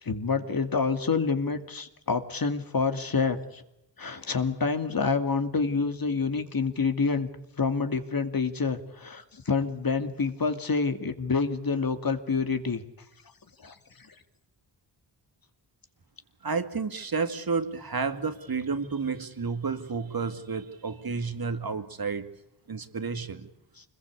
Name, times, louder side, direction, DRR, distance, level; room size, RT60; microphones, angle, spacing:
voice 1, 0.0-3.6 4.0-7.3 7.6-12.8 13.6-14.1, left 4 dB, 45° left, 8 dB, 2.5 m, -28 dB
voice 2, 16.4-22.3 22.7-23.5, right 4 dB, 45° right, 9 dB, 2.3 m, -31 dB
26.0 x 21.5 x 8.4 m, 0.86 s
cardioid pair, 75°, 48 cm